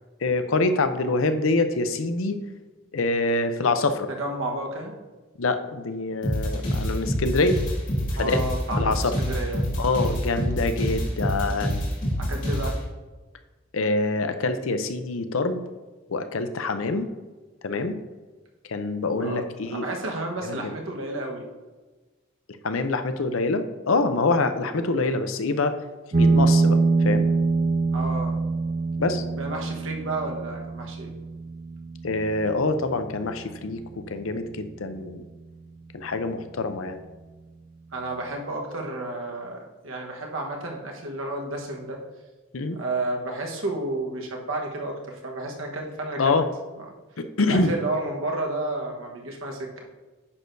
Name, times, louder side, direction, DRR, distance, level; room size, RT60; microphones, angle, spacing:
voice 1, 0.2-2.4 2.9-4.1 5.4-7.6 8.2-8.4 8.8-9.1 9.8-11.8 13.7-15.6 16.1-17.1 17.6-18.0 18.7-19.9 20.4-20.7 22.6-25.7 26.1-26.8 27.0-27.3 29.0-29.2 32.0-35.2 35.9-37.0 42.5-42.8 46.2-46.4 47.2-47.7, left 3 dB, 80° left, 9 dB, 0.6 m, -25 dB
voice 2, 4.1-5.0 8.2-9.7 10.4-10.5 12.2-12.8 19.2-21.5 27.9-28.4 29.4-31.1 37.9-42.0 42.7-46.4 46.8-46.9 47.4-49.8, right 2 dB, 80° right, 1 dB, 1.3 m, -31 dB
sound 1, 6.2-12.7, equal, 40° left, 2.1 m, -26 dB
sound 2, 26.1-35.1, right 3 dB, 35° right, 0.4 m, -25 dB
9.6 x 6.4 x 2.7 m, 1.2 s
head